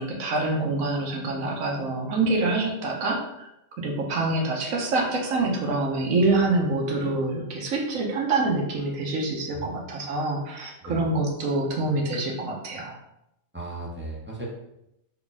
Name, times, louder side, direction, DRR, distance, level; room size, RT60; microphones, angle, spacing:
voice 1, 0.0-3.5 3.8-13.0, right 2 dB, 70° right, 0 dB, 1.2 m, -26 dB
voice 2, 13.5-14.5, right 2 dB, 15° right, -5 dB, 0.4 m, -36 dB
3.5 x 2.3 x 4.0 m, 0.83 s
omnidirectional pair, 1.5 m